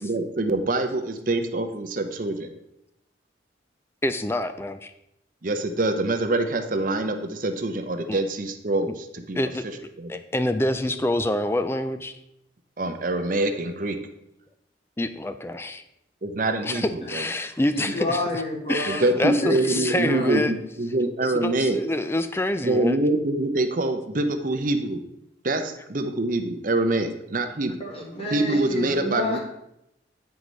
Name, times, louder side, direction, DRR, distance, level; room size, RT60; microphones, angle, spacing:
voice 1, 0.0-2.5 5.4-9.4 10.0-10.2 12.8-14.0 16.2-17.2 18.9-21.8 22.6-25.0 25.4-27.8 28.3-29.4, right 2 dB, 45° right, 7 dB, 0.7 m, -25 dB
voice 2, 4.0-4.9 8.1-8.2 9.3-9.6 10.1-12.1 15.0-15.8 16.6-18.2 18.7-20.5 21.2-23.0, left 1 dB, 15° left, 10 dB, 0.3 m, -26 dB
voice 3, 17.7-20.4 27.8-29.4, left 1 dB, 30° left, -2 dB, 1.4 m, -30 dB
9.3 x 4.7 x 3.9 m, 0.83 s
head